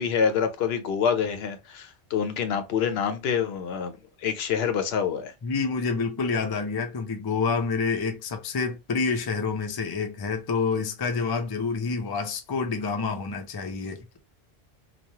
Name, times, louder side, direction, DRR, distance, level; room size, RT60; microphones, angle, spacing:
voice 1, 0.0-5.3, left 7 dB, 75° left, 0.8 m, -26 dB
voice 2, 5.4-14.0, left 4 dB, 35° left, 0.4 m, -28 dB
3.0 x 2.2 x 2.7 m
omnidirectional pair, 1.1 m